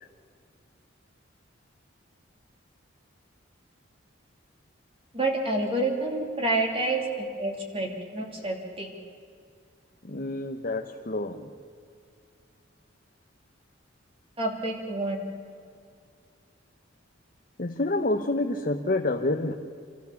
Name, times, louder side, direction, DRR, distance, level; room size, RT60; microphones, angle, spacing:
voice 1, 5.1-8.9 14.4-15.2, right 2 dB, 30° right, 1 dB, 3.1 m, -28 dB
voice 2, 10.0-11.5 17.6-19.5, left 2 dB, 45° left, 3 dB, 0.9 m, -28 dB
27.0 x 14.5 x 7.1 m, 2.2 s
head